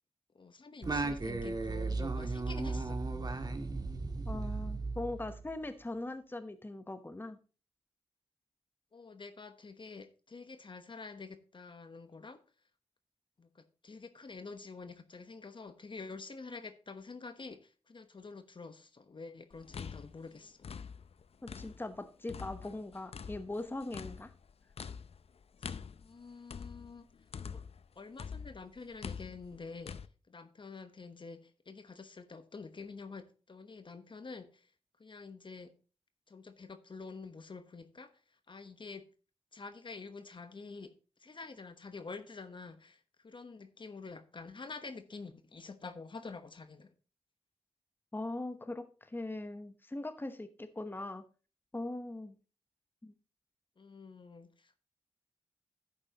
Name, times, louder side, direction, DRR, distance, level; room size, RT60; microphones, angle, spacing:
voice 1, 0.3-3.0 8.9-12.4 13.4-20.6 25.6-27.1 27.4-27.6 27.9-30.0 30.3-34.7 35.0-35.7 36.3-39.0 39.5-40.9 41.2-46.9 53.8-54.8, left 4 dB, 50° left, 1.1 m, -48 dB
Singing, 0.8-5.6, right 3 dB, 40° right, 1.4 m, -36 dB
voice 2, 4.3-7.4 21.4-24.3 48.1-51.2 51.7-52.4 53.0-53.1, left 2 dB, 20° left, 1.0 m, -40 dB
sound 1, 19.5-22.0 22.3-27.9 28.2-30.1, left 6 dB, 65° left, 0.6 m, -45 dB
11.0 x 8.7 x 2.9 m
wide cardioid pair, 75°, 11 cm